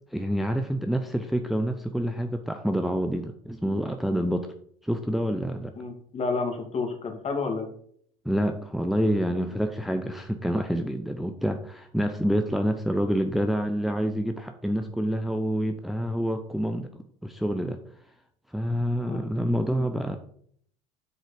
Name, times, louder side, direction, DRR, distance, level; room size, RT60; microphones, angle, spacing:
voice 1, 0.1-4.5 4.8-5.7 8.2-16.9 17.2-17.8 18.5-20.2, equal, ahead, 6 dB, 0.8 m, -27 dB
voice 2, 5.8-7.7 19.0-19.2, left 4 dB, 35° left, 4 dB, 2.5 m, -30 dB
8.0 x 6.5 x 5.0 m, 0.63 s
hypercardioid pair, 70°, 18 cm